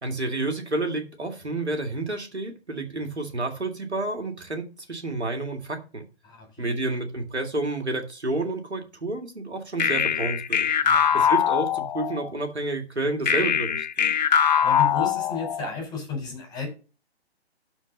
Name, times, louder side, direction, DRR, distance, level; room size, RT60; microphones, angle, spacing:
voice 1, 0.0-6.0 6.6-10.7 11.1-13.9, right 2 dB, 80° right, 4 dB, 2.1 m, -30 dB
voice 2, 6.2-6.7 10.8-11.2 14.6-16.7, left 4 dB, 15° left, 1 dB, 4.1 m, -33 dB
sound 1, 9.8-12.3 13.3-15.8, left 8 dB, 40° left, 0.7 m, -22 dB
12.5 x 4.5 x 3.9 m, 0.32 s
figure-of-eight pair, 135°, 33 cm